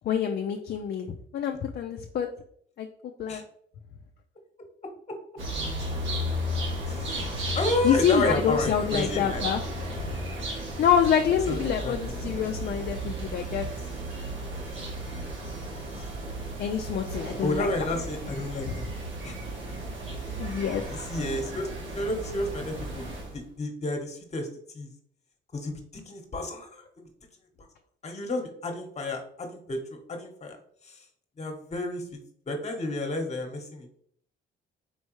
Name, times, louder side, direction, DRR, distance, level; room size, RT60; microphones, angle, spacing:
voice 1, 0.0-2.3 2.8-3.4 7.1-7.3 7.8-9.6 9.9-10.2 10.6-13.7 16.6-17.7 18.6-18.8 20.4-20.8, left 8 dB, 55° left, 3 dB, 0.4 m, -27 dB
sound 1, 5.4-23.4, right 1 dB, 75° right, 1.3 m, -34 dB
voice 2, 6.9-7.3 7.5-9.5 11.5-12.4 17.4-18.9 19.2-19.4 21.1-21.7 21.9-23.1 23.3-24.5 24.7-24.9 25.5-25.8 26.1-26.9 28.0-30.6 30.8-31.0 31.4-32.0 32.5-33.9, left 2 dB, 35° left, 4 dB, 1.1 m, -31 dB
4.5 x 3.2 x 3.1 m, 0.63 s
cardioid pair, 90°, 20 cm